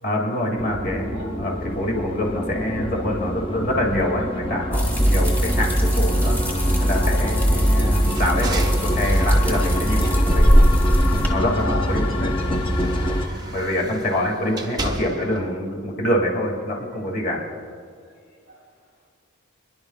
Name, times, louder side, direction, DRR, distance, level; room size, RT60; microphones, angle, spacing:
voice 1, 0.0-6.4 6.8-10.6 11.3-12.3 13.5-17.4, left 1 dB, 45° left, 0 dB, 2.4 m, -25 dB
sound 1, 0.6-13.3, equal, 25° left, 0.9 m, -27 dB
sound 2, 4.7-11.3, equal, 10° left, 1.8 m, -19 dB
voice 2, 6.3-7.1 10.1-10.2 11.5-11.9 12.6-13.7, left 1 dB, 75° left, -1 dB, 2.4 m, -38 dB
sound 3, 8.0-11.2 11.5-15.5, right 3 dB, 20° right, 0.6 m, -36 dB
27.5 x 11.0 x 2.4 m, 2.1 s
head